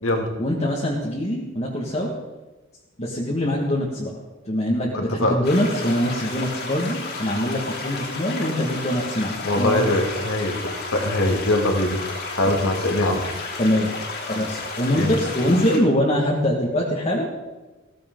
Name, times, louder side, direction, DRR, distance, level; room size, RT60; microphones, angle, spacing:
voice 1, 0.4-2.1 3.0-4.1 4.5-9.9 13.6-13.9 14.3-17.3, equal, 35° left, -3 dB, 1.8 m, -23 dB
voice 2, 4.9-5.4 9.4-12.0 12.3-13.3 15.0-15.1, left 1 dB, 75° left, 2 dB, 2.3 m, -22 dB
sound 1, 5.4-15.8, left 3 dB, 55° left, 3.1 m, -32 dB
15.5 x 14.5 x 3.9 m, 1.2 s
head